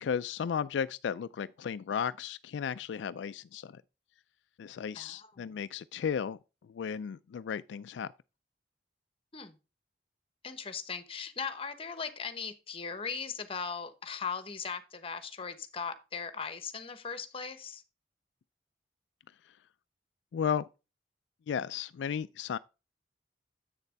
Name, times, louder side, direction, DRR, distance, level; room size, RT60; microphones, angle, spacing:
voice 1, 0.0-3.8 4.6-8.1 19.5-19.6 20.3-20.6 21.5-22.6, left 7 dB, 80° left, 0.3 m, -34 dB
voice 2, 4.9-5.4 9.3-9.6 10.4-17.8, left 5 dB, 30° left, 1.0 m, -39 dB
8.1 x 6.7 x 3.4 m
head